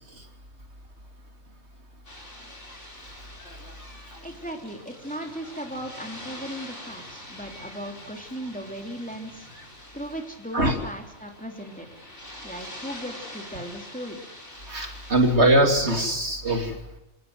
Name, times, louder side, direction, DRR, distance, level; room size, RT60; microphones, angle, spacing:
sound 1, 2.1-15.4, left 1 dB, 65° left, 5.2 m, -44 dB
voice 1, 4.2-9.5 9.9-11.9 12.4-14.2, equal, 5° left, 2 dB, 3.1 m, -37 dB
voice 2, 14.7-16.8, right 1 dB, 55° right, 4 dB, 3.2 m, -22 dB
27.5 x 19.0 x 8.0 m, 0.91 s
omnidirectional pair, 1.3 m